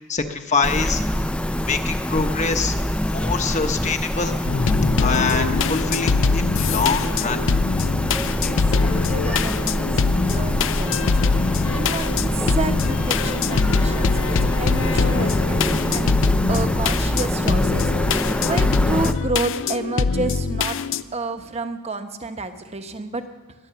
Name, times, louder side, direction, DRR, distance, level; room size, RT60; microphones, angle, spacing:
voice 1, 0.1-1.0 1.5-2.7 3.1-4.3 5.0-7.4, left 4 dB, 35° left, 6 dB, 0.9 m, -24 dB
sound 1, 0.6-19.1, left 1 dB, 5° left, 0.5 m, -25 dB
sound 2, 4.4-21.0, left 5 dB, 60° left, 0.5 m, -23 dB
voice 2, 8.8-16.1 16.5-20.8 21.1-23.2, right 2 dB, 30° right, 8 dB, 1.0 m, -30 dB
22.0 x 9.5 x 6.9 m, 1.4 s
head